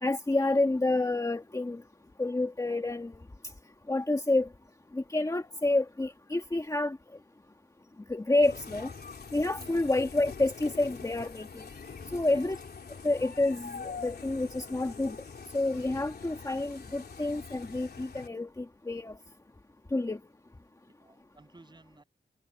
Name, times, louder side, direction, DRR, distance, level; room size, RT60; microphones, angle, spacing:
voice 1, 0.0-1.8 2.2-3.1 3.9-4.5 4.9-7.0 8.1-8.9 9.3-11.7 12.1-12.6 13.0-15.2 15.5-19.2 19.9-20.2, left 2 dB, 20° left, 1.9 m, -29 dB
sound 1, 8.4-18.3, left 5 dB, 60° left, 3.3 m, -44 dB
voice 2, 9.5-9.9 12.3-12.5 21.0-22.0, right 2 dB, 25° right, 7.5 m, -55 dB
wide cardioid pair, 150°, 19 cm